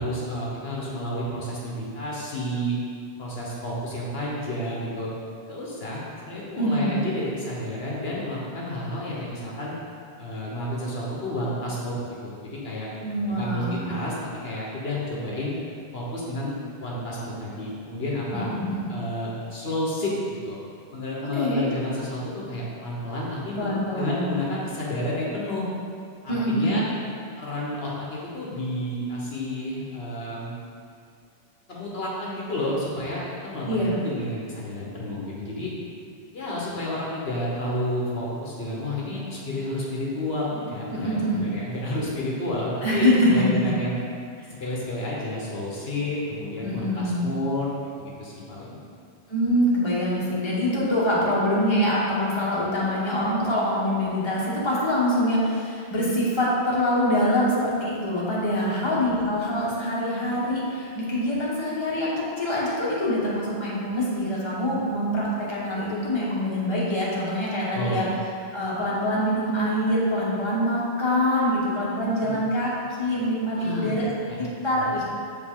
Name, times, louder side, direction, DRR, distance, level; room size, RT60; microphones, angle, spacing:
voice 1, 0.0-2.8 3.2-5.1 5.5-9.8 10.2-11.9 12.2-12.9 13.3-14.1 14.4-15.5 15.9-18.5 18.9-20.6 20.9-25.7 26.2-26.8 27.4-30.5 31.7-35.7 36.3-44.0 44.6-47.7 48.0-48.8 58.6-59.1 67.7-68.0 72.2-72.3 73.5-74.0 74.3-74.4 74.7-74.9, left 1 dB, 70° left, -5 dB, 1.4 m, -30 dB
voice 2, 6.6-6.9 13.0-13.9 18.3-18.9 21.3-21.7 23.5-24.3 26.3-26.8 33.7-33.9 40.9-41.4 42.8-43.7 46.6-47.3 49.3-68.0 68.5-72.7 73.0-74.1 74.4-75.0, equal, 25° left, -7 dB, 1.4 m, -24 dB
7.5 x 5.1 x 3.8 m, 2.3 s
omnidirectional pair, 1.1 m